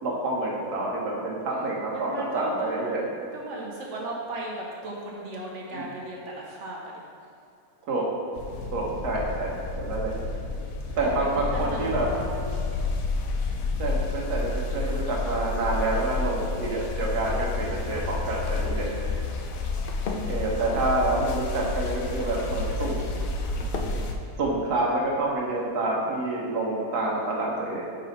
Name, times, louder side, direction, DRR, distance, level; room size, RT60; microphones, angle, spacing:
voice 1, 0.0-3.0 5.7-5.8 7.9-8.1 8.7-10.1 11.0-12.1 13.8-18.9 20.3-23.1 24.4-27.8, right 2 dB, 80° right, -3 dB, 1.6 m, -28 dB
voice 2, 1.5-3.1 3.3-6.9 8.6-9.0 11.0-12.7 18.8-20.2 23.5-24.0 27.2-27.7, right 1 dB, 55° right, -3 dB, 1.1 m, -38 dB
sound 1, 8.3-24.1, left 3 dB, 70° left, 0.9 m, -30 dB
sound 2, 17.8-25.5, left 3 dB, 85° left, 0.4 m, -43 dB
5.4 x 4.1 x 5.3 m, 2.6 s
omnidirectional pair, 1.7 m